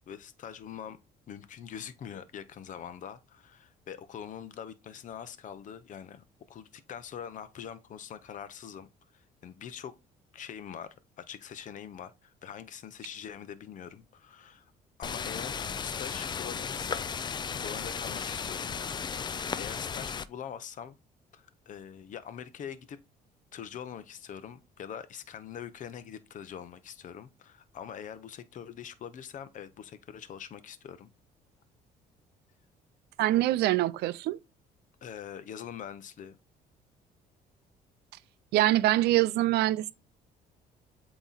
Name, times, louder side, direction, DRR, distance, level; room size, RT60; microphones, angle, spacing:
voice 1, 0.1-1.0 1.3-8.9 9.1-10.0 10.3-14.7 15.0-17.1 17.6-21.0 21.3-23.0 23.5-31.1 35.0-36.4, left 8 dB, 50° left, 0.7 m, -43 dB
sound 1, 15.0-20.3, left 6 dB, 25° left, 0.4 m, -35 dB
voice 2, 33.2-34.4 38.5-39.9, right 15 dB, 75° right, 0.5 m, -24 dB
8.0 x 3.0 x 4.0 m
cardioid pair, 110°, 17 cm